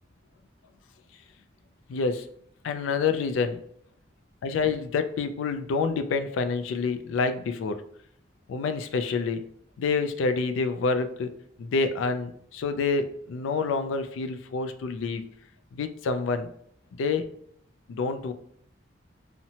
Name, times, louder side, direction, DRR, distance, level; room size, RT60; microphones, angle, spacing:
voice 1, 1.9-2.3 2.6-3.6 4.4-7.8 8.5-9.4 9.8-11.3 11.6-15.2 15.7-16.5 16.9-17.3 17.9-18.3, left 4 dB, 90° left, 9 dB, 0.3 m, -27 dB
2.8 x 2.1 x 2.7 m, 0.67 s
head